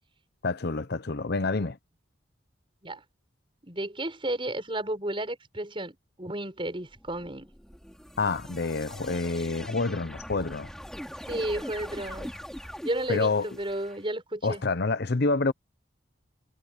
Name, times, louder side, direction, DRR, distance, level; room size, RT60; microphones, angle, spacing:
voice 1, 0.4-1.8 8.2-10.7 13.1-13.5 14.4-15.5, left 3 dB, 60° left, 0.7 m, -27 dB
voice 2, 3.6-7.5 11.3-12.3 12.8-14.6, right 1 dB, 30° right, 6.2 m, -32 dB
sound 1, 6.9-14.0, equal, 5° left, 3.8 m, -42 dB
head